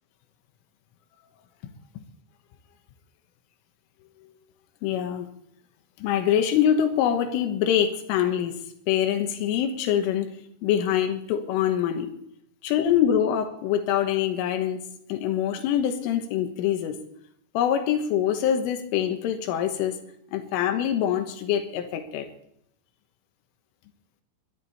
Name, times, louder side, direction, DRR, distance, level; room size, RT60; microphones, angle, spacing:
voice 1, 4.8-5.3 6.0-8.5 8.9-10.4 10.6-12.1 12.6-14.8 15.1-17.0 17.6-20.0 20.3-22.3, left 9 dB, 90° left, 6 dB, 3.8 m, -24 dB
22.0 x 13.0 x 4.2 m, 0.73 s
omnidirectional pair, 5.6 m